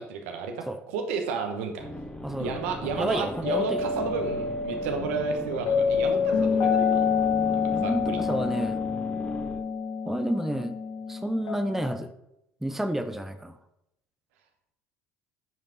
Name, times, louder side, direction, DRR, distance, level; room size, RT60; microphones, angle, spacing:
voice 1, 0.0-1.9 2.4-7.0 7.5-8.2, right 5 dB, 70° right, 4 dB, 1.1 m, -32 dB
sound 1, 1.8-9.6, left 2 dB, 15° left, 1.2 m, -39 dB
voice 2, 2.8-3.8 7.7-8.8 10.1-10.7 11.1-12.1 12.6-13.6, right 1 dB, 5° right, 8 dB, 0.6 m, -30 dB
sound 2, 3.4-11.9, left 6 dB, 60° left, 1.3 m, -27 dB
9.4 x 5.1 x 2.9 m, 0.83 s
hypercardioid pair, 65°, 8 cm